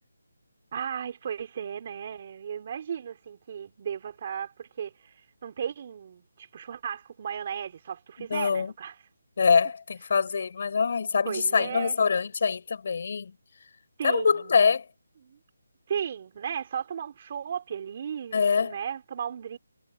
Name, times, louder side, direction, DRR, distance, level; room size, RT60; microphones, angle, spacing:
voice 1, 0.7-9.0 10.3-10.4 11.3-12.0 14.0-14.7 15.2-15.4 15.9-19.6, right 8 dB, 30° right, 4.0 m, -35 dB
voice 2, 8.3-8.7 9.4-13.3 14.0-14.8 18.3-18.7, left 5 dB, 45° left, 5.7 m, -24 dB
hypercardioid pair, 170°, 0 cm